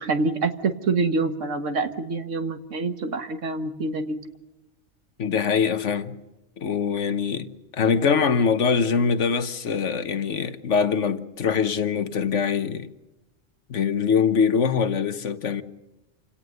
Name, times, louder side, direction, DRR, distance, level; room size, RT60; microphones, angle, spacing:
voice 1, 0.0-4.2, right 3 dB, 75° right, 1.8 m, -26 dB
voice 2, 5.2-6.2 6.6-12.9 13.7-15.6, left 6 dB, 70° left, 1.4 m, -23 dB
27.5 x 17.5 x 6.6 m
omnidirectional pair, 1.3 m